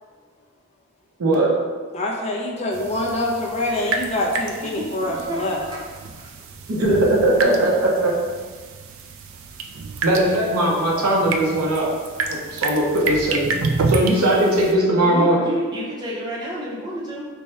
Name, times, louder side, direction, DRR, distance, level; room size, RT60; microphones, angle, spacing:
voice 1, 1.2-1.5 6.7-8.1 10.0-11.9 12.3-13.5 13.9-15.4, right 1 dB, 90° right, -3 dB, 0.8 m, -19 dB
voice 2, 1.9-5.6, left 1 dB, 30° left, -2 dB, 0.5 m, -25 dB
sound 1, 2.7-14.7, right 3 dB, 70° right, 0.4 m, -29 dB
voice 3, 4.6-5.9 6.2-6.3 7.3-7.9 15.0-17.3, right 1 dB, 20° right, -6 dB, 0.7 m, -31 dB
3.4 x 2.2 x 4.1 m, 1.5 s
head